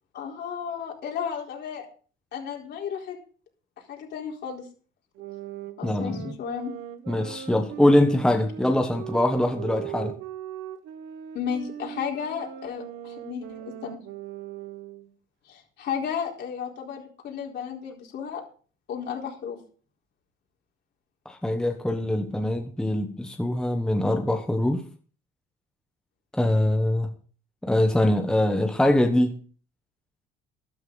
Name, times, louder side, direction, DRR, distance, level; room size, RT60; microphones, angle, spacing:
voice 1, 0.1-1.9 2.3-3.2 3.9-4.6 5.8-6.7 11.3-14.0 15.5-18.4 18.9-19.6, left 7 dB, 55° left, 0 dB, 4.2 m, -33 dB
sound 1, 5.2-15.1, right 10 dB, 75° right, 1.3 m, -39 dB
voice 2, 5.8-6.2 7.1-10.1 21.2-24.8 26.3-27.1 27.6-29.4, left 1 dB, 5° left, 4 dB, 1.1 m, -23 dB
12.5 x 12.5 x 4.0 m, 0.42 s
cardioid pair, 145°, 21 cm